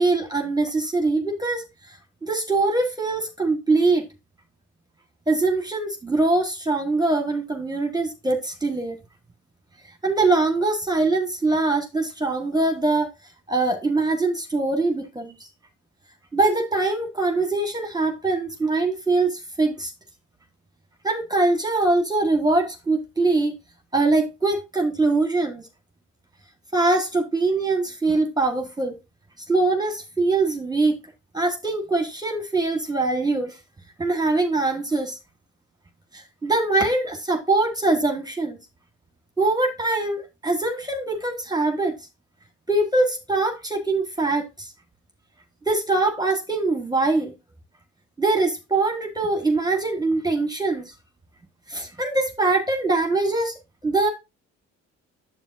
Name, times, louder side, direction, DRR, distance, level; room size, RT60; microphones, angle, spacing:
voice 1, 0.0-4.1 5.3-9.0 10.0-13.1 13.5-15.5 16.3-19.9 21.0-23.5 23.9-25.7 26.7-29.0 29.5-31.0 31.3-33.6 34.0-35.2 36.1-38.6 39.4-42.0 42.7-44.7 45.6-47.3 48.2-50.9 51.7-54.1, right 3 dB, 15° right, 1.4 m, -23 dB
9.0 x 7.8 x 2.5 m
cardioid pair, 90°, 30 cm